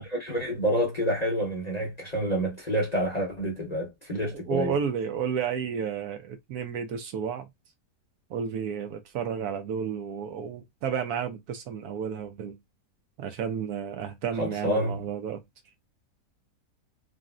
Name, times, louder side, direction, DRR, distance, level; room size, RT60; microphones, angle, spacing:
voice 1, 0.0-4.7 14.4-15.0, equal, 35° left, 0.7 m, -28 dB
voice 2, 4.2-7.5 8.3-12.6 13.2-15.4, right 7 dB, 70° right, 1.0 m, -32 dB
3.8 x 2.1 x 2.4 m
omnidirectional pair, 1.8 m